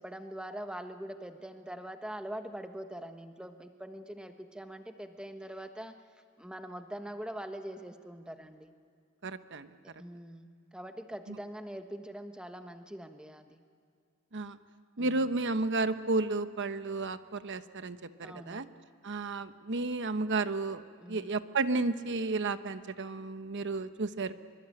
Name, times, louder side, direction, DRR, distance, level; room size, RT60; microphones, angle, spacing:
voice 1, 0.0-5.9 6.4-8.7 10.0-13.6 15.0-15.2 18.2-18.6 21.0-21.3, right 1 dB, 5° right, 6 dB, 1.3 m, -43 dB
voice 2, 9.2-9.7 11.3-11.4 14.3-14.6 15.0-18.7 19.0-24.3, right 3 dB, 55° right, 11 dB, 1.0 m, -32 dB
25.0 x 24.0 x 9.0 m, 2.3 s
head